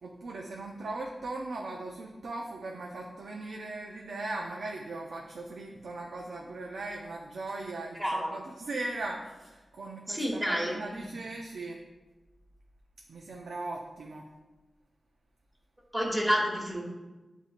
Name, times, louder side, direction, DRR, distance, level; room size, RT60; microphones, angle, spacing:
voice 1, 0.0-11.8 13.1-14.3, right 2 dB, 85° right, 0 dB, 0.4 m, -39 dB
voice 2, 8.0-8.3 10.1-11.1 15.9-16.8, equal, 10° right, -3 dB, 1.3 m, -29 dB
7.8 x 2.6 x 2.4 m, 1.2 s
wide cardioid pair, 70°, 0 cm